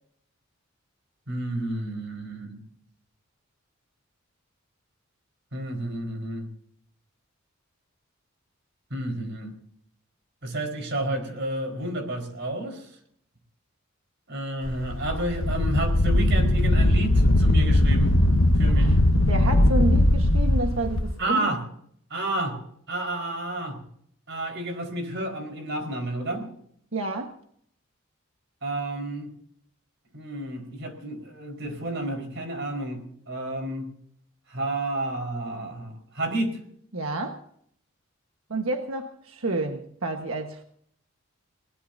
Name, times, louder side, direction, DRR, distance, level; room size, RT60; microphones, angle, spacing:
voice 1, 1.3-2.6 5.5-6.5 8.9-9.5 10.4-13.0 14.3-18.2 18.6-19.0 21.2-21.6 22.1-22.6 22.9-23.8 24.3-26.5 28.6-29.3 30.1-33.0 33.3-33.9 34.5-36.6, right 1 dB, 60° right, 4 dB, 4.6 m, -30 dB
Wind, 14.6-21.0, left 1 dB, 85° left, 1.1 m, -20 dB
voice 2, 18.7-21.5 26.9-27.3 36.9-37.4 38.5-40.6, right 2 dB, 75° right, 4 dB, 1.4 m, -30 dB
21.5 x 20.0 x 2.7 m, 0.65 s
head